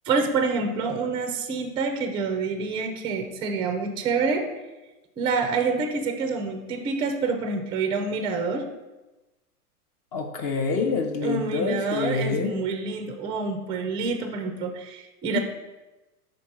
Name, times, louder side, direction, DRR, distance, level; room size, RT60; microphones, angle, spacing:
voice 1, 0.1-4.5 5.2-8.6 11.2-15.4, right 4 dB, 10° right, 6 dB, 0.4 m, -27 dB
voice 2, 10.1-12.5 15.3-15.4, left 4 dB, 35° left, 4 dB, 0.7 m, -26 dB
5.1 x 3.9 x 5.8 m, 1.1 s
hypercardioid pair, 110°, 47 cm